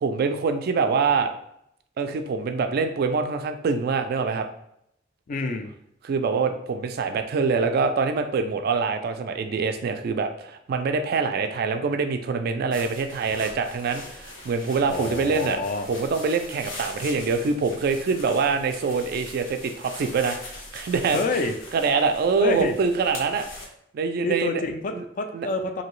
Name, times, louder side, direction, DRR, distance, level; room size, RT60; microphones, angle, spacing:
voice 1, 0.0-1.3 2.0-4.5 6.0-15.6 15.9-21.2 21.7-23.5 23.9-24.6 24.9-25.0 25.3-25.5, right 4 dB, 50° right, 7 dB, 0.3 m, -25 dB
voice 2, 5.3-5.7 14.9-15.9 21.1-21.5 22.4-22.7 24.2-25.8, left 2 dB, 45° left, 5 dB, 0.3 m, -27 dB
sound 1, 12.7-23.7, left 2 dB, 85° left, 0.9 m, -41 dB
2.9 x 2.7 x 3.0 m, 0.76 s
head